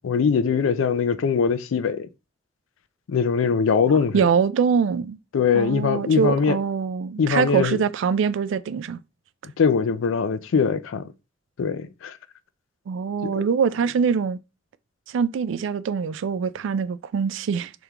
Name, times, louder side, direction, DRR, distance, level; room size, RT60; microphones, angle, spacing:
voice 1, 0.0-2.1 3.1-4.2 5.3-6.6 7.2-7.8 9.6-11.1 11.6-12.2 13.2-13.5, left 6 dB, 80° left, 0.4 m, -22 dB
voice 2, 4.1-5.2 5.5-9.0 12.9-14.4 15.1-17.7, right 6 dB, 65° right, 0.3 m, -23 dB
3.5 x 3.4 x 2.9 m
head